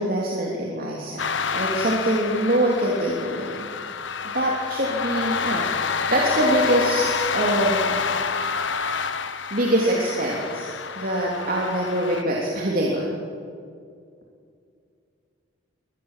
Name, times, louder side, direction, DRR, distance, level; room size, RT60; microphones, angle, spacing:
voice 1, 0.0-3.7 4.3-8.0 9.5-13.0, right 1 dB, 45° right, -3 dB, 3.3 m, -24 dB
sound 1, 1.2-12.2, left 5 dB, 70° left, 1.2 m, -28 dB
24.0 x 20.0 x 7.6 m, 2.3 s
head